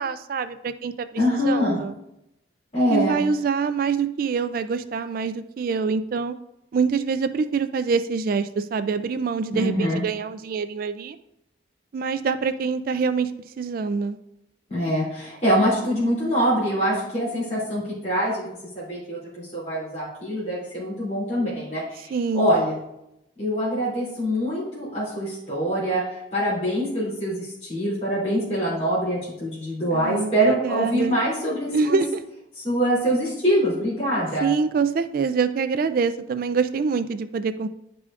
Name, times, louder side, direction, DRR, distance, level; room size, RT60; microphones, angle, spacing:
voice 1, 0.0-1.9 2.9-6.3 6.7-11.2 11.9-13.3 13.6-14.2 22.1-22.5 29.9-31.2 31.7-32.2 34.4-37.7, right 5 dB, 50° right, 11 dB, 0.3 m, -25 dB
voice 2, 1.2-1.8 2.7-3.2 9.5-10.0 14.7-18.5 18.7-19.2 19.5-22.8 23.4-32.0 32.5-34.5, equal, 35° left, -9 dB, 2.8 m, -24 dB
11.0 x 4.8 x 2.5 m, 0.83 s
head